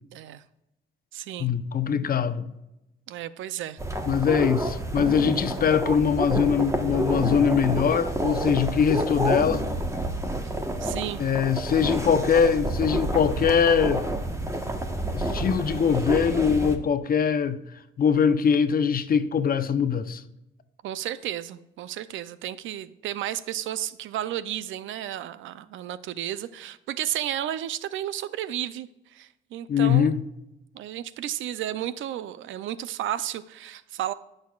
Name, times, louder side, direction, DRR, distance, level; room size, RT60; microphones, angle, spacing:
voice 1, 0.1-0.4 1.1-1.5 3.1-3.8 10.8-11.2 20.8-30.1 30.7-34.1, right 12 dB, 80° right, 0.5 m, -33 dB
voice 2, 1.4-2.5 4.1-9.7 11.2-14.1 15.1-17.6 18.0-20.2 29.7-30.2, left 7 dB, 45° left, 0.8 m, -22 dB
sound 1, 3.8-16.8, right 1 dB, 15° right, 1.2 m, -29 dB
17.5 x 6.5 x 2.4 m
cardioid pair, 90°, 20 cm